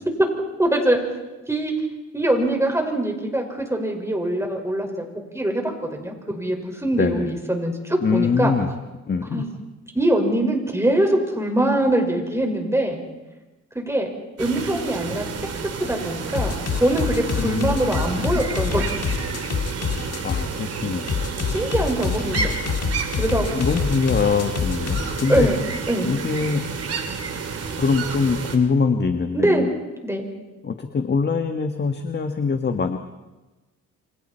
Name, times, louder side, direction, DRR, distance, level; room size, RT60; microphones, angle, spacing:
voice 1, 0.6-1.0 1.5-1.7 2.1-5.0 5.3-5.6 5.9-8.5 9.3-9.6 9.9-13.0 13.7-14.1 14.4-15.2 15.8-19.0 21.5-22.5 23.2-23.5 25.3-25.6 25.9-26.1 29.3-29.7 30.0-30.3, right 1 dB, 10° right, 2 dB, 5.6 m, -23 dB
voice 2, 8.0-8.7 9.1-9.4 17.4-17.8 20.2-21.1 23.5-25.5 26.0-26.6 27.8-29.7 30.6-33.0, left 5 dB, 35° left, 6 dB, 1.6 m, -23 dB
sound 1, 14.4-28.6, right 5 dB, 55° right, 3.3 m, -31 dB
sound 2, 16.3-20.5 21.1-25.5, left 6 dB, 55° left, 2.0 m, -26 dB
29.0 x 25.0 x 4.5 m, 1.1 s
cardioid pair, 90°, 30 cm